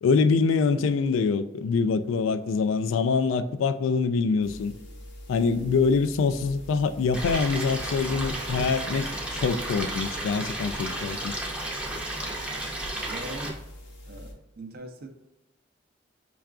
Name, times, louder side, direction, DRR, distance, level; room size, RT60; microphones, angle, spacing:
voice 1, 0.0-4.7 5.3-11.4, left 5 dB, 85° left, 0.3 m, -25 dB
sound 1, 4.4-14.3, left 1 dB, 60° left, 0.8 m, -45 dB
voice 2, 5.4-6.0 11.1-11.3 13.1-13.6 14.1-15.1, right 1 dB, 55° right, 0.5 m, -42 dB
Stream, 7.1-13.5, right 1 dB, 5° right, 0.6 m, -33 dB
5.5 x 2.3 x 2.4 m
head